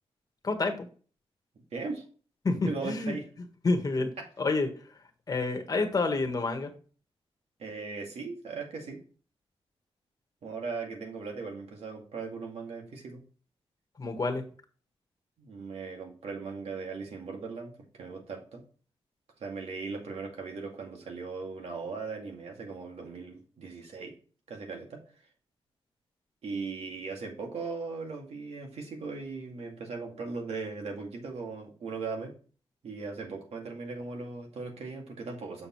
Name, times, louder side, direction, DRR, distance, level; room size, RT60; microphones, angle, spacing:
voice 1, 0.4-0.9 2.4-3.2 3.6-4.1 4.4-4.7 5.3-6.7 14.0-14.4, left 3 dB, 35° left, 5 dB, 1.4 m, -28 dB
voice 2, 1.7-2.1 2.7-3.3 4.2-4.3 7.6-9.0 10.4-13.2 15.4-18.6 19.4-24.1 24.5-25.0 26.4-32.3 32.8-35.7, right 4 dB, 85° right, 1 dB, 2.2 m, -38 dB
7.1 x 6.6 x 3.1 m, 0.39 s
wide cardioid pair, 140°, 10 cm